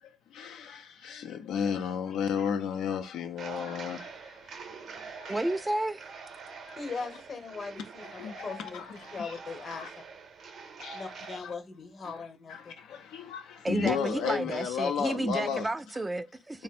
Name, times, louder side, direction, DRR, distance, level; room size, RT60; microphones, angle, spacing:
voice 1, 0.0-5.5 6.7-6.8 8.0-9.4 9.7-9.9 10.8-11.5 12.0-15.7 16.5-16.6, left 7 dB, 85° left, 0.5 m, -34 dB
sound 1, 3.4-11.4, right 5 dB, 65° right, 0.7 m, -45 dB
voice 2, 5.3-6.0 13.6-16.6, right 2 dB, 15° right, 0.3 m, -31 dB
voice 3, 6.8-9.9 10.9-12.7, left 4 dB, 50° left, 0.9 m, -40 dB
3.5 x 2.0 x 4.1 m
cardioid pair, 90°, 0 cm